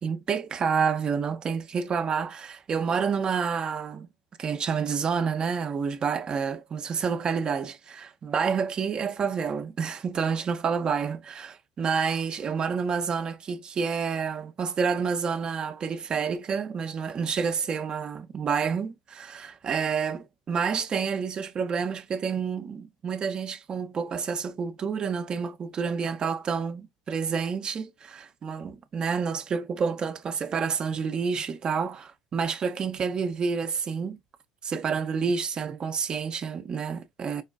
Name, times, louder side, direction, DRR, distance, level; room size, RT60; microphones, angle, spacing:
voice 1, 0.0-4.1 4.4-34.2 34.6-37.4, right 6 dB, 35° right, 0.4 m, -29 dB
4.6 x 2.1 x 2.2 m
hypercardioid pair, 70°, 3 cm